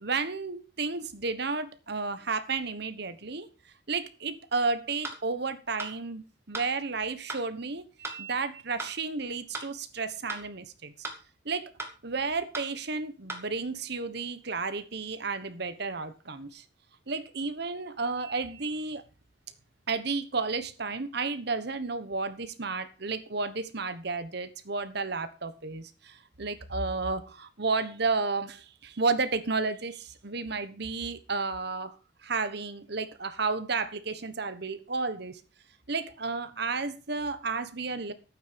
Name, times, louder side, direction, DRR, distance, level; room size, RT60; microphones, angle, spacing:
voice 1, 0.0-3.5 3.9-10.9 11.4-11.7 12.0-16.6 17.1-19.0 19.9-32.0 32.2-35.4 35.9-38.1, right 4 dB, 60° right, 1.3 m, -32 dB
sound 1, 5.0-5.2 5.8-5.9 6.5-6.7 7.3-7.4 8.0-8.2 8.8-8.9 9.5-9.7 10.3-10.4 11.0-11.2 11.8-11.9 12.5-12.7 13.3-13.4, right 2 dB, 15° right, 2.3 m, -37 dB
12.0 x 8.9 x 5.3 m
head